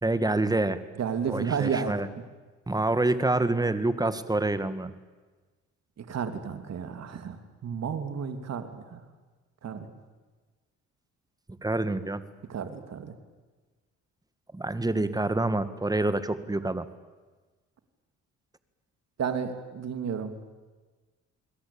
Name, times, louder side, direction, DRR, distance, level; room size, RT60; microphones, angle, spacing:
voice 1, 0.0-0.8 1.3-2.1 2.7-4.9 11.6-12.2 14.5-16.9, right 2 dB, 10° right, 12 dB, 1.9 m, -27 dB
voice 2, 1.0-1.9 6.0-9.0 9.6-9.9 12.5-13.1 19.2-20.3, right 7 dB, 60° right, 8 dB, 2.9 m, -32 dB
28.5 x 21.5 x 8.8 m, 1.3 s
cardioid pair, 90°, 30 cm